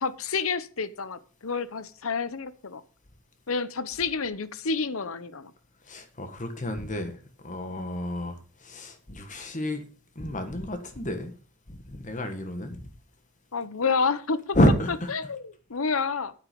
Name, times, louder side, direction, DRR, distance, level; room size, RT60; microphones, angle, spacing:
voice 1, 0.0-2.8 3.5-5.5 13.5-14.6 15.1-16.3, left 5 dB, 75° left, 0.9 m, -29 dB
voice 2, 5.9-7.1 7.4-9.8 10.1-11.3 11.7-12.9 14.5-15.1, equal, 35° left, 1.5 m, -29 dB
9.4 x 8.9 x 5.3 m
head